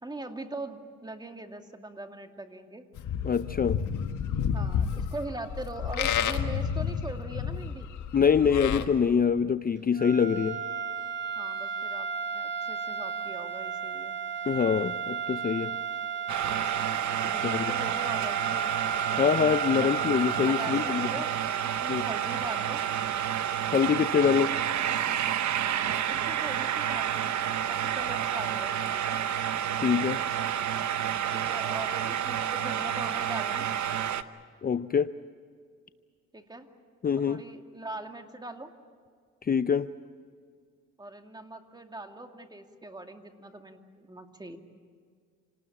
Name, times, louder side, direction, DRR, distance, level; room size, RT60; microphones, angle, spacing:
voice 1, 0.0-2.9 4.5-7.9 11.4-12.1 12.3-14.2 16.5-17.0 17.3-18.8 19.8-20.0 20.4-22.8 25.7-27.4 27.7-29.2 31.3-33.7 36.3-36.7 37.3-38.7 41.0-44.6, right 2 dB, 15° right, 5 dB, 2.4 m, -41 dB
Livestock farm animals working animals, 3.0-8.9, left 8 dB, 75° left, 1.6 m, -30 dB
voice 2, 3.2-3.8 8.1-10.6 14.5-15.8 17.4-17.7 19.2-21.1 21.9-22.0 23.7-24.6 29.7-30.2 34.6-35.1 37.0-37.4 39.4-39.9, left 7 dB, 30° left, 12 dB, 0.6 m, -25 dB
sound 1, 9.9-21.5, right 6 dB, 35° right, 2.0 m, -34 dB
sound 2, 16.3-34.2, right 9 dB, 70° right, 1.0 m, -30 dB
27.5 x 19.0 x 8.6 m, 2.1 s
cardioid pair, 90°, 30 cm